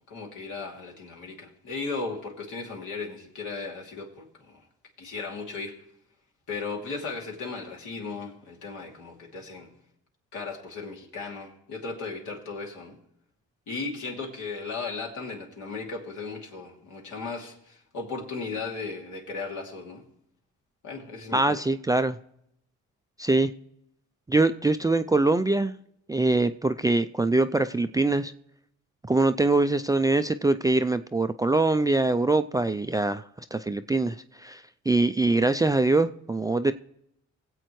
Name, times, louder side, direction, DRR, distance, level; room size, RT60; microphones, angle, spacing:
voice 1, 0.1-4.6 5.0-5.7 6.5-9.7 10.3-12.9 13.7-20.0 20.8-21.6, left 4 dB, 75° left, 2.6 m, -36 dB
voice 2, 21.3-22.2 23.2-23.5 24.3-25.7 26.1-28.3 29.0-33.2 33.5-36.7, right 2 dB, 15° right, 0.3 m, -23 dB
20.5 x 7.9 x 3.1 m
cardioid pair, 90°, 30 cm